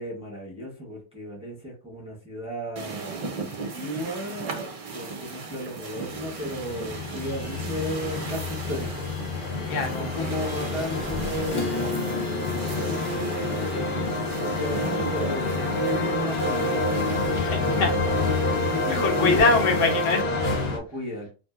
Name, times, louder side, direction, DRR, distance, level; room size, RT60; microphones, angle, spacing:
voice 1, 0.0-9.1 10.1-11.8 12.6-16.9 17.6-18.1 18.6-19.5 20.2-21.3, equal, 5° right, 0.7 m, -34 dB
sound 1, 2.8-20.2, right 4 dB, 55° right, 0.4 m, -37 dB
sound 2, 6.1-20.8, left 2 dB, 60° left, 0.9 m, -28 dB
voice 2, 9.6-10.3 17.3-18.0 18.2-18.4 18.7-20.4, left 4 dB, 85° left, 1.1 m, -25 dB
Acoustic guitar / Strum, 11.5-16.4, left 3 dB, 40° left, 0.4 m, -36 dB
2.7 x 2.6 x 2.3 m
omnidirectional pair, 1.2 m